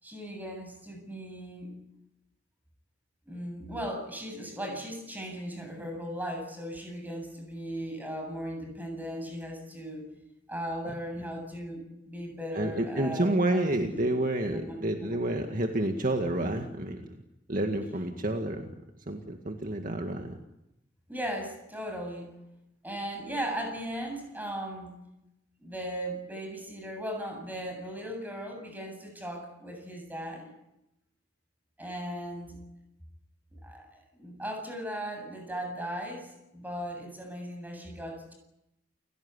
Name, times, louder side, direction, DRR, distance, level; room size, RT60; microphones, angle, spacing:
voice 1, 0.0-1.7 3.3-10.1 10.5-13.7 14.5-15.2 21.1-22.3 22.8-24.9 25.6-30.5 31.8-32.6 33.6-38.3, equal, 10° right, 4 dB, 7.8 m, -37 dB
voice 2, 12.5-17.1 17.5-18.7 19.1-20.4, right 1 dB, 45° right, 4 dB, 2.0 m, -29 dB
29.5 x 17.5 x 9.8 m, 0.90 s
head